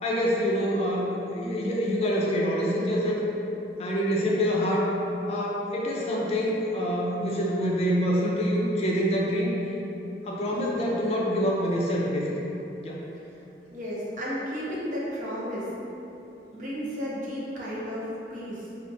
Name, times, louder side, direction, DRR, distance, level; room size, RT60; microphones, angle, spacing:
voice 1, 0.0-3.2 3.8-4.9 5.3-9.6 10.3-12.3 12.8-13.0, equal, 35° left, -3 dB, 0.4 m, -26 dB
voice 2, 13.7-15.7 16.5-18.8, equal, 45° right, -7 dB, 0.7 m, -33 dB
4.3 x 2.4 x 2.6 m, 2.9 s
head